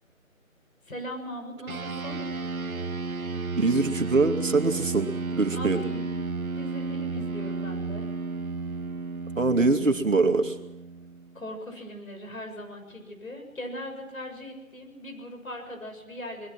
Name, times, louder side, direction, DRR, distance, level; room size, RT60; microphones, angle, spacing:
voice 1, 0.8-2.2 5.5-6.2 6.5-8.1 11.3-16.5, equal, 75° left, 4 dB, 7.2 m, -39 dB
sound 1, 1.7-11.4, right 3 dB, 85° right, 1.4 m, -33 dB
voice 2, 3.6-5.1 5.3-5.8 9.4-10.6, right 3 dB, 65° right, 6 dB, 2.4 m, -23 dB
24.5 x 21.0 x 6.0 m, 0.92 s
figure-of-eight pair, 170°, 41 cm